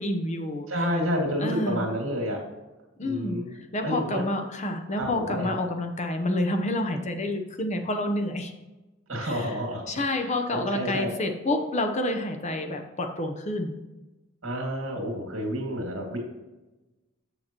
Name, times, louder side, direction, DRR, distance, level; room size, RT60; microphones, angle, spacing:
voice 1, 0.0-0.9 1.4-1.9 3.0-8.5 9.2-9.5 9.9-13.7, left 1 dB, 35° left, 5 dB, 0.8 m, -29 dB
voice 2, 0.7-2.4 3.0-3.4 3.8-4.3 4.9-5.5 9.1-9.9 10.2-11.1 14.4-16.2, equal, 80° right, 0 dB, 2.1 m, -29 dB
7.2 x 6.6 x 3.0 m, 1.1 s
head